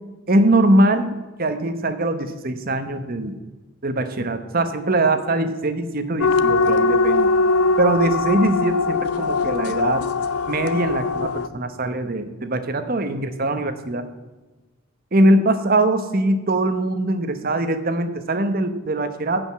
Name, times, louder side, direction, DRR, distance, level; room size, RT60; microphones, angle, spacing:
voice 1, 0.3-1.1 1.4-3.4 3.8-7.3 7.8-10.1 10.5-14.0 15.1-19.4, right 1 dB, 40° right, 9 dB, 1.0 m, -21 dB
sound 1, 6.2-11.5, left 4 dB, 80° left, 0.6 m, -21 dB
15.5 x 5.3 x 7.2 m, 1.2 s
head